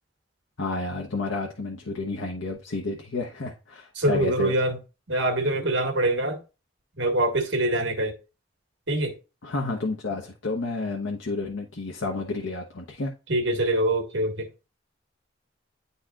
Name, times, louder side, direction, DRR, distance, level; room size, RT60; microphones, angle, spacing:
voice 1, 0.6-4.5 9.4-13.1, left 3 dB, 90° left, 0.9 m, -30 dB
voice 2, 3.9-4.8 5.1-6.4 7.0-8.1 8.9-9.1 13.3-14.5, right 1 dB, 75° right, 1.6 m, -24 dB
10.0 x 4.1 x 2.4 m
head